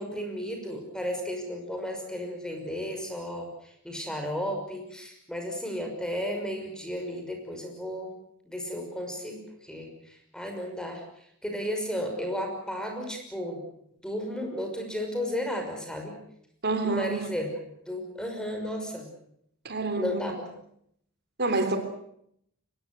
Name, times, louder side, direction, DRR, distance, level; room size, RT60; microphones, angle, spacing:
voice 1, 0.0-3.5 3.8-8.1 8.4-11.0 11.4-13.6 14.0-16.1 16.8-17.5 17.9-19.1 20.0-20.3, equal, 5° left, 3 dB, 5.9 m, -33 dB
voice 2, 16.6-17.2 19.6-20.3 21.4-21.8, right 3 dB, 50° right, 8 dB, 3.6 m, -27 dB
24.0 x 21.0 x 7.9 m, 0.71 s
head